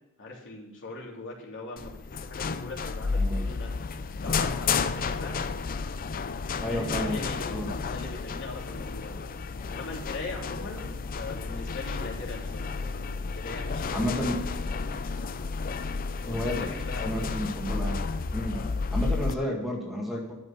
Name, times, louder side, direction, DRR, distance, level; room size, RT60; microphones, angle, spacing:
voice 1, 0.2-3.7 4.2-5.3 6.6-9.3 9.7-15.0 16.2-17.2 18.5-18.7, left 2 dB, 60° left, -3 dB, 3.2 m, -41 dB
sound 1, 1.8-19.3, left 4 dB, 40° left, 0.5 m, -32 dB
voice 2, 6.6-7.7 13.9-14.4 16.3-16.7 17.0-18.0 18.3-18.6 18.9-20.3, equal, ahead, -2 dB, 1.9 m, -31 dB
12.0 x 6.2 x 6.7 m, 0.91 s
head